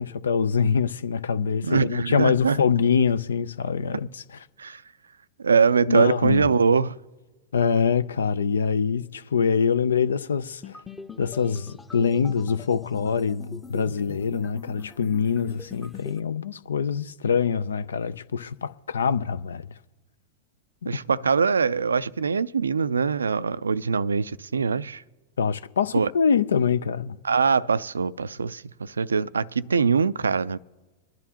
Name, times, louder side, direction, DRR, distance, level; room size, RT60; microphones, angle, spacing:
voice 1, 0.0-4.2 5.9-6.5 7.5-10.8 11.2-19.7 25.4-27.2, left 6 dB, 80° left, 0.4 m, -24 dB
voice 2, 1.6-2.6 4.6-4.8 5.4-7.0 20.9-25.0 25.9-26.1 27.2-30.6, right 5 dB, 85° right, 0.3 m, -23 dB
sound 1, 10.6-16.2, left 5 dB, 15° left, 0.8 m, -42 dB
25.5 x 10.5 x 2.8 m
hypercardioid pair, 95°, 0 cm